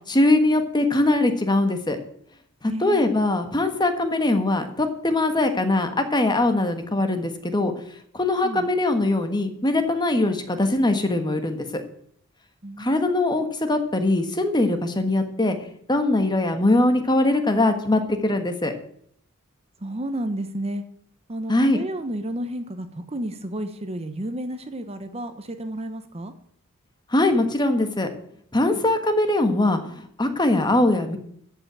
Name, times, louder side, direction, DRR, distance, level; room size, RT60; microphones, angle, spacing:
voice 1, 0.1-2.0 2.6-7.7 8.1-11.8 12.8-15.6 15.9-18.7 21.5-21.8 27.1-28.1 28.5-31.2, left 2 dB, 20° left, 7 dB, 1.4 m, -21 dB
voice 2, 2.6-3.1 8.4-8.7 12.6-13.1 19.8-20.8 21.3-26.3, right 1 dB, 30° right, 9 dB, 0.9 m, -31 dB
14.0 x 5.8 x 8.6 m, 0.65 s
head